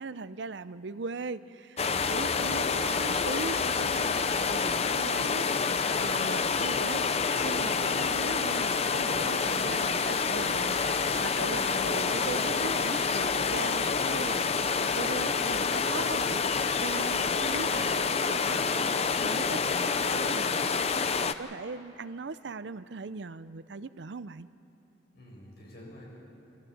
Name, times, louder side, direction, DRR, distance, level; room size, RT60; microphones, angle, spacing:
voice 1, 0.0-24.5, right 4 dB, 65° right, 15 dB, 0.5 m, -40 dB
voice 2, 1.8-2.2 25.1-26.1, equal, 55° left, -4 dB, 7.6 m, -49 dB
sound 1, 1.8-21.3, left 5 dB, 35° left, 0.6 m, -28 dB
26.0 x 15.0 x 8.8 m, 3.0 s
head